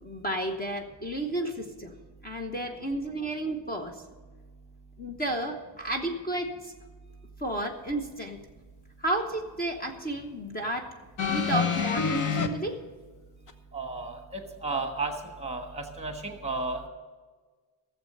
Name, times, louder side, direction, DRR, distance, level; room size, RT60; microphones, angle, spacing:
voice 1, 0.0-1.9 2.2-4.0 5.0-6.7 7.4-8.4 9.0-10.9 11.3-12.8, right 1 dB, 20° left, 3 dB, 1.0 m, -32 dB
sound 1, 11.2-12.5 13.5-13.6, left 6 dB, 45° left, 1.0 m, -27 dB
voice 2, 13.7-14.2 14.6-15.1 15.4-16.9, right 3 dB, 15° right, 4 dB, 1.3 m, -32 dB
15.5 x 7.6 x 6.7 m, 1.4 s
cardioid pair, 180°, 44 cm